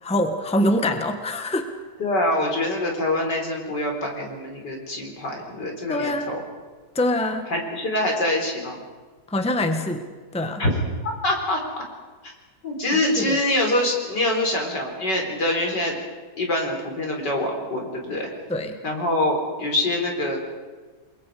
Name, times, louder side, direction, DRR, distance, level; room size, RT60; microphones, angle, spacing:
voice 1, 0.0-1.7 5.9-6.4 6.9-7.5 9.3-10.1 10.3-10.6 12.9-13.4 18.5-18.8, left 1 dB, 5° left, 6 dB, 1.3 m, -24 dB
voice 2, 2.0-6.4 7.5-8.8 10.6-10.7 11.0-11.8 12.2-12.3 12.6-16.0 16.4-18.3 18.8-20.4, left 1 dB, 75° left, 1 dB, 4.8 m, -25 dB
29.5 x 22.0 x 5.1 m, 1.4 s
omnidirectional pair, 1.9 m